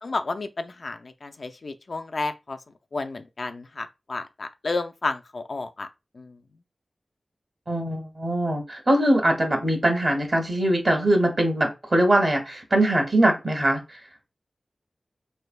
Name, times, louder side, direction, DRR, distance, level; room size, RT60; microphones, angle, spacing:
voice 1, 0.0-2.6 2.9-5.9 6.1-6.4, left 3 dB, 60° left, 0.4 m, -31 dB
voice 2, 7.7-14.0, right 1 dB, 45° right, 1.2 m, -22 dB
4.2 x 3.3 x 2.2 m
wide cardioid pair, 85°, 0 cm